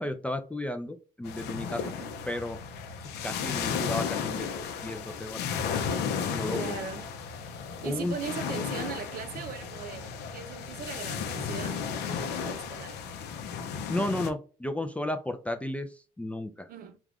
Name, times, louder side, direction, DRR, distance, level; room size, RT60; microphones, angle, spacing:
voice 1, 0.0-1.8 2.3-2.6 3.2-5.5 6.2-6.8 7.8-8.1 11.4-11.5 13.9-16.7, left 1 dB, 10° left, 0.3 m, -33 dB
sound 1, 1.2-14.3, left 6 dB, 75° left, 0.5 m, -34 dB
voice 2, 6.5-7.1 7.8-13.0 16.7-17.0, right 7 dB, 60° right, 0.6 m, -39 dB
2.4 x 2.3 x 3.2 m
cardioid pair, 110°, 17 cm